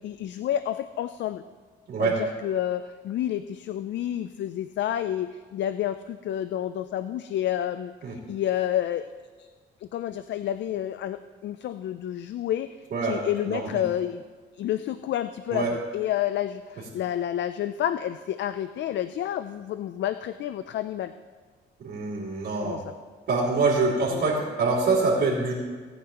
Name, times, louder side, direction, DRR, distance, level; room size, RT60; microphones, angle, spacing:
voice 1, 0.0-1.4 2.0-9.1 9.4-9.5 9.8-12.7 13.0-14.2 14.6-21.1 22.6-22.9 24.1-24.3, left 11 dB, 65° left, 12 dB, 0.4 m, -29 dB
voice 2, 13.5-13.8 15.5-15.7 21.8-22.8 23.3-25.5, right 3 dB, 60° right, -9 dB, 3.2 m, -25 dB
18.5 x 9.4 x 3.0 m, 1.5 s
cardioid pair, 90°, 20 cm